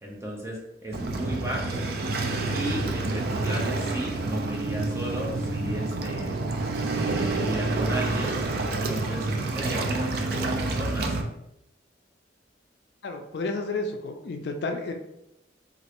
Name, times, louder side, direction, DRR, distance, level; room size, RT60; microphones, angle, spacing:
voice 1, 0.0-6.4 7.0-8.4 8.7-11.2, right 1 dB, 15° right, -3 dB, 0.6 m, -35 dB
Waves surf, 0.9-11.2, right 2 dB, 55° right, 0.4 m, -28 dB
voice 2, 13.0-14.9, left 3 dB, 60° left, 5 dB, 0.4 m, -31 dB
3.0 x 2.4 x 2.9 m, 0.84 s
head